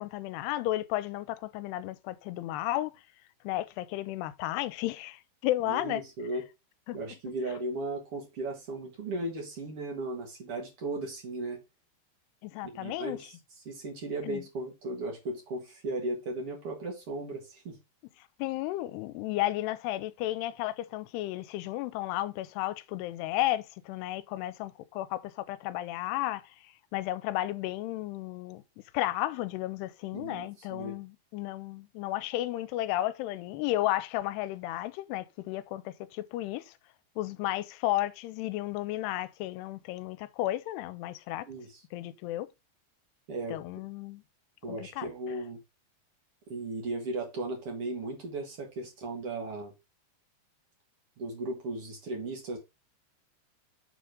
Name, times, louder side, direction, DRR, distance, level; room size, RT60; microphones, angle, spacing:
voice 1, 0.0-2.9 3.4-6.0 6.9-7.0 12.4-13.2 14.2-14.4 18.4-28.6 28.9-36.7 37.2-41.5 41.9-42.5 43.5-44.2 44.7-45.1, left 15 dB, 85° left, 2.6 m, -33 dB
voice 2, 5.6-6.4 6.9-11.6 12.6-17.8 30.1-31.0 41.5-41.8 43.3-43.6 44.6-45.6 46.5-49.7 51.2-52.6, right 2 dB, 50° right, 1.9 m, -36 dB
7.2 x 3.8 x 5.0 m
omnidirectional pair, 4.8 m